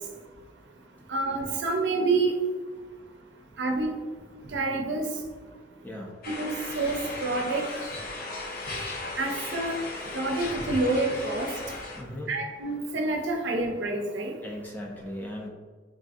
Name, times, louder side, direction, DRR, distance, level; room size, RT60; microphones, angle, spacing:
voice 1, 1.1-2.4 3.6-3.9 4.5-5.0 6.3-7.6 9.2-9.7 10.1-11.5 12.3-14.3, right 3 dB, 75° right, 2 dB, 0.5 m, -27 dB
sound 1, 6.2-12.0, left 2 dB, 55° left, 0.6 m, -36 dB
voice 2, 11.9-12.3 14.4-15.5, left 1 dB, 10° left, -1 dB, 0.4 m, -37 dB
3.6 x 2.4 x 2.5 m, 1.5 s
head